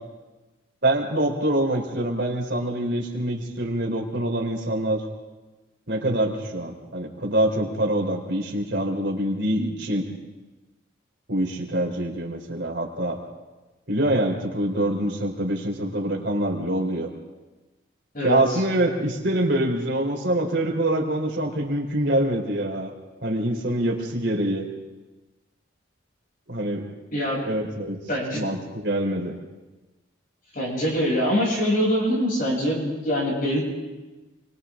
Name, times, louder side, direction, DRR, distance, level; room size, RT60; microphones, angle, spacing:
voice 1, 0.8-5.0 5.9-10.1 11.3-13.2 13.9-17.1 18.2-22.9 23.2-24.7 26.5-26.9 27.4-28.0 28.3-29.4, right 1 dB, 55° right, 0 dB, 3.8 m, -25 dB
voice 2, 18.1-18.6 27.1-27.4 28.1-28.4 30.5-33.6, equal, 45° left, -4 dB, 7.6 m, -24 dB
30.0 x 24.5 x 3.8 m, 1.2 s
head